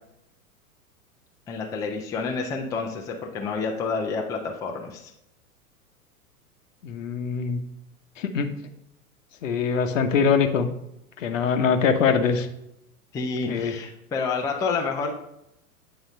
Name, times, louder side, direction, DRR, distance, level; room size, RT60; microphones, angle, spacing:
voice 1, 1.5-5.1 13.1-15.1, left 4 dB, 10° left, 1 dB, 0.5 m, -29 dB
voice 2, 6.8-7.6 8.2-8.5 9.4-10.7 11.2-12.5 13.5-13.7, left 6 dB, 60° left, 7 dB, 1.0 m, -23 dB
8.2 x 3.9 x 5.3 m, 0.82 s
figure-of-eight pair, 95°, 44 cm